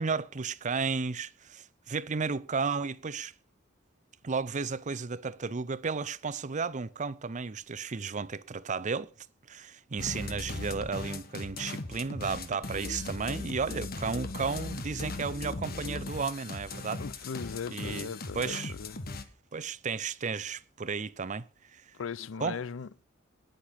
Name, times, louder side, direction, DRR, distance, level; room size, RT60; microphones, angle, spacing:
voice 1, 0.0-3.3 4.2-9.1 9.5-17.0 17.7-18.7 19.5-21.5 21.7-21.8 22.4-22.6, right 5 dB, 40° right, 0.6 m, -33 dB
sound 1, 10.0-19.2, left 2 dB, 50° left, 1.5 m, -38 dB
voice 2, 17.0-19.0 22.0-23.1, left 6 dB, 90° left, 0.5 m, -38 dB
18.5 x 6.7 x 5.8 m
head